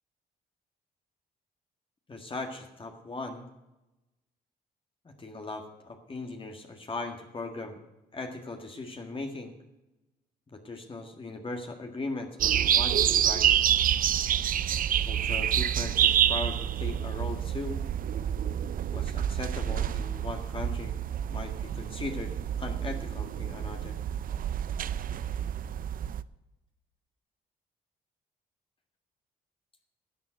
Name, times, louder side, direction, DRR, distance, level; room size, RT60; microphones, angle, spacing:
voice 1, 2.1-3.5 5.2-7.8 8.1-9.5 10.5-13.5 15.0-17.8 18.9-21.0 21.3-22.3 22.6-23.9, left 2 dB, 30° left, 3 dB, 1.7 m, -38 dB
sound 1, 12.4-26.2, right 10 dB, 55° right, 0.5 m, -28 dB
12.5 x 7.0 x 7.9 m, 0.99 s
cardioid pair, 75°, 17 cm